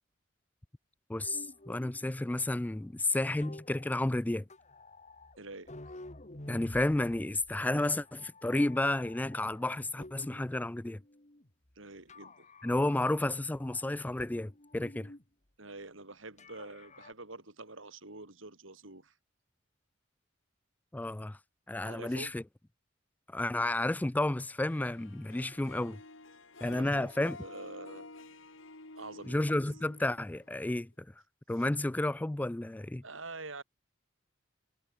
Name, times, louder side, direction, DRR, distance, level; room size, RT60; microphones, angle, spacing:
voice 1, 1.1-4.4 6.5-11.0 12.6-15.1 20.9-21.4 21.7-22.4 23.3-26.0 26.6-27.4 29.3-30.9 31.5-33.0, left 1 dB, 10° left, 0.3 m, -31 dB
sound 1, 1.2-10.6 10.9-11.7 12.1-13.3 13.6-15.2 16.4-17.1, left 1 dB, 35° left, 2.7 m, -52 dB
voice 2, 5.4-5.7 11.7-12.5 15.6-19.1 21.8-22.3 26.7-28.1 28.9-29.6 33.0-33.6, right 3 dB, 80° right, 5.0 m, -46 dB
Harp, 24.7-30.9, left 3 dB, 85° left, 3.3 m, -51 dB
head